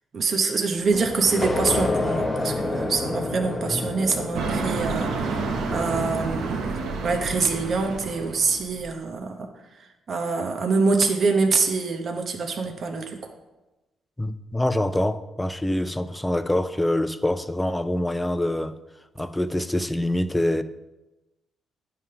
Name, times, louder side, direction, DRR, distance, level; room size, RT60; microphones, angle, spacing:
voice 1, 0.1-13.2, right 4 dB, 50° right, 4 dB, 0.8 m, -25 dB
sound 1, 0.9-7.3, left 2 dB, 25° left, 0.9 m, -29 dB
sound 2, 4.3-8.9, right 4 dB, 75° right, 0.9 m, -29 dB
voice 2, 14.2-18.7 19.2-20.6, left 1 dB, 10° left, 11 dB, 0.4 m, -25 dB
9.2 x 3.4 x 5.6 m, 1.0 s
cardioid pair, 90°, 0 cm